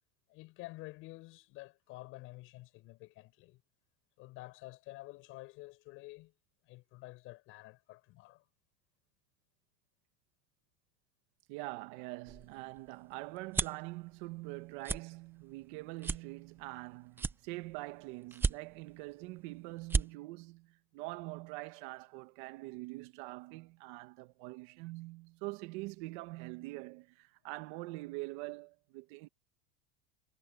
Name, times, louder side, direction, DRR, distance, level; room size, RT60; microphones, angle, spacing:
voice 1, 0.3-3.6 4.2-6.3 6.6-8.4, left 20 dB, 45° left, 6.8 m, -50 dB
voice 2, 11.5-29.3, right 22 dB, 55° right, 1.5 m, -44 dB
sound 1, 12.3-13.9 14.4-14.6 14.8-15.0 15.5-15.6 16.0-16.8 17.1-17.8 18.3-18.9 19.4-19.5 19.8-20.1, right 4 dB, 10° right, 0.4 m, -33 dB
supercardioid pair, 160°, 29 cm